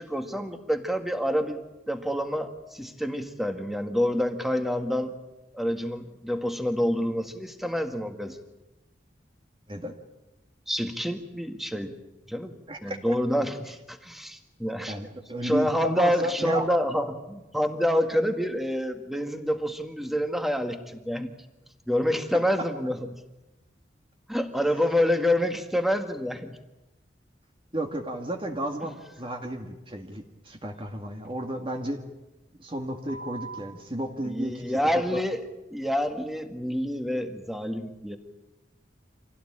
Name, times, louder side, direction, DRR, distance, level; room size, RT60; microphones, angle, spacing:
voice 1, 0.0-5.1 5.5-8.4 10.7-11.9 12.3-12.5 12.8-15.0 15.4-21.3 21.9-23.1 24.3-26.6 34.2-35.4 35.7-38.2, equal, ahead, 6 dB, 1.8 m, -27 dB
voice 2, 14.9-16.6 27.7-32.0 32.6-35.2, right 1 dB, 30° right, 3 dB, 2.1 m, -32 dB
sound 1, 31.2-31.3 31.7-31.8 33.1-33.6 34.7-35.2 36.0-36.1, right 4 dB, 65° right, 3.8 m, -42 dB
26.5 x 17.0 x 9.9 m, 1.0 s
head